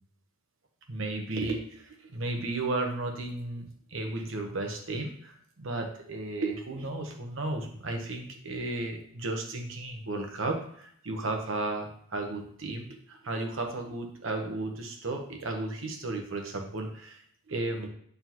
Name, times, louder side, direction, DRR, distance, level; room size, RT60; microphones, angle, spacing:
voice 1, 0.9-17.9, right 2 dB, 70° right, 3 dB, 1.1 m, -34 dB
9.3 x 3.8 x 3.0 m, 0.63 s
head